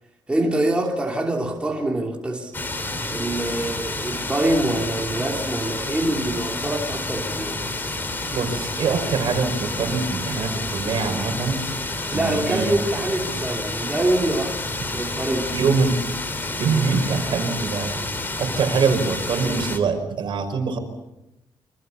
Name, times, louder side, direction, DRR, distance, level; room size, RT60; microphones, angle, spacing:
voice 1, 0.3-2.5 3.1-7.6 12.1-14.6 14.9-15.6, right 1 dB, 10° right, 3.0 m, -25 dB
sound 1, 2.5-19.8, left 2 dB, 20° left, 3.2 m, -29 dB
voice 2, 8.3-11.6 12.1-12.7 15.5-16.0 16.6-18.0 18.4-20.8, right 5 dB, 60° right, 5.6 m, -23 dB
28.5 x 25.5 x 7.2 m
wide cardioid pair, 170°, 9 cm